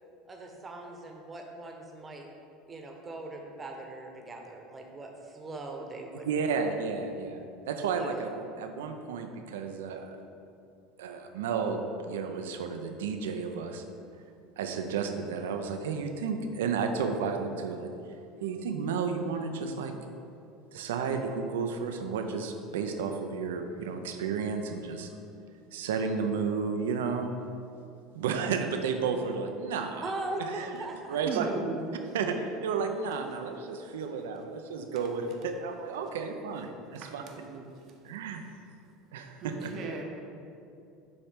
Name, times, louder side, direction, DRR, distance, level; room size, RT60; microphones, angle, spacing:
voice 1, 0.3-2.3 2.7-6.3 8.0-8.2 30.0-31.2, right 2 dB, 25° right, 2 dB, 1.0 m, -40 dB
voice 2, 6.2-8.3 8.6-10.2 11.0-13.8 14.6-17.9 18.4-20.1 20.7-25.1 25.7-27.3 28.1-30.1 30.4-30.7 31.1-31.5 32.1-37.2 37.5-38.4 39.1-39.7, right 5 dB, 90° right, 6 dB, 0.5 m, -32 dB
voice 3, 31.3-31.8 36.9-37.6 39.4-40.0, right 5 dB, 50° right, 1 dB, 0.8 m, -37 dB
7.1 x 3.1 x 5.1 m, 2.6 s
supercardioid pair, 100°, 0 cm